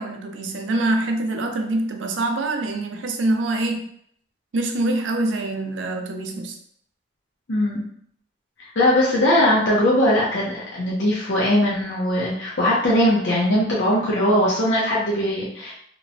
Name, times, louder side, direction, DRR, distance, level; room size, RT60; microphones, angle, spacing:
voice 1, 0.0-3.9 4.5-6.6, right 2 dB, 80° right, 4 dB, 0.4 m, -25 dB
voice 2, 7.5-7.8 8.8-15.7, left 1 dB, 70° left, -6 dB, 0.6 m, -20 dB
2.9 x 2.0 x 2.5 m, 0.66 s
head